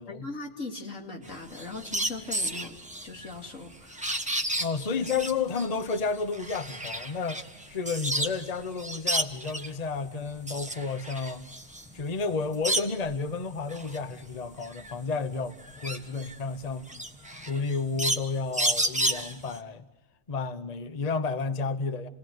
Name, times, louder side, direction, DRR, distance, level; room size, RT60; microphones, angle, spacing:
voice 1, 0.1-2.8 3.0-4.1, left 3 dB, 85° left, 3.0 m, -39 dB
sound 1, 1.2-8.5 8.8-9.8 10.2-13.2 13.6-19.6, right 1 dB, 5° right, 1.2 m, -32 dB
voice 2, 4.6-11.5 11.9-17.0 17.5-19.8 20.3-22.1, left 4 dB, 35° left, 1.0 m, -31 dB
28.5 x 18.5 x 9.4 m
omnidirectional pair, 1.3 m